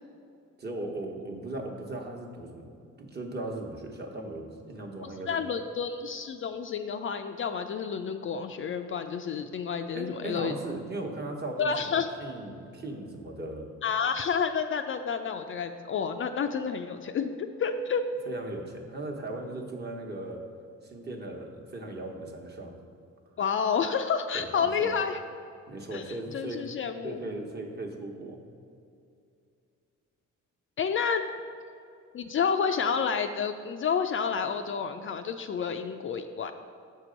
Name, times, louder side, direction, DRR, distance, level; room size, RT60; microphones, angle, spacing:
voice 1, 0.6-5.4 9.9-13.7 18.3-20.4 20.8-22.7 24.3-24.9 25.7-26.6 27.0-28.4, right 2 dB, 35° right, 1 dB, 1.1 m, -38 dB
voice 2, 5.3-10.5 11.6-12.1 13.8-18.3 23.4-25.2 25.9-27.2 30.8-31.3 32.1-36.5, left 6 dB, 45° left, 7 dB, 0.4 m, -30 dB
6.7 x 4.6 x 5.1 m, 2.4 s
cardioid pair, 90°, 30 cm